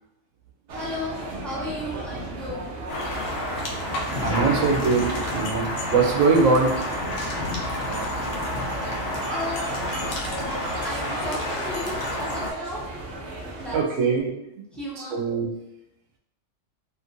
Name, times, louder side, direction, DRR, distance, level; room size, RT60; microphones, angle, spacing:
voice 1, 0.7-2.6 9.3-10.1 10.8-12.9 13.4-14.1 14.7-15.2, left 1 dB, ahead, -7 dB, 0.7 m, -35 dB
sound 1, 0.7-13.8, right 2 dB, 60° right, 0.7 m, -35 dB
sound 2, 2.9-12.5, left 1 dB, 70° left, 0.9 m, -30 dB
voice 2, 4.2-6.7 13.7-14.3 15.1-15.5, right 4 dB, 85° right, 0 dB, 1.1 m, -21 dB
3.0 x 2.9 x 2.5 m, 0.88 s
omnidirectional pair, 1.3 m